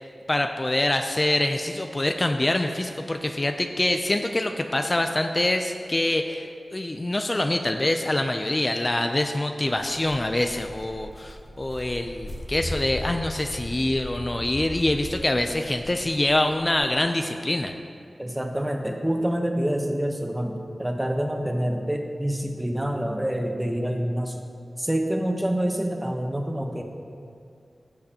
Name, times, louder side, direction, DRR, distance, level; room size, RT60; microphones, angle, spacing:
voice 1, 0.3-17.7, left 1 dB, 35° left, 5 dB, 0.4 m, -25 dB
Walk footsteps, 9.7-16.8, left 1 dB, 60° left, 1.1 m, -38 dB
voice 2, 18.2-24.4 24.8-26.8, right 1 dB, 15° right, 3 dB, 0.9 m, -27 dB
13.5 x 6.5 x 2.9 m, 2.4 s
cardioid pair, 50°, 0 cm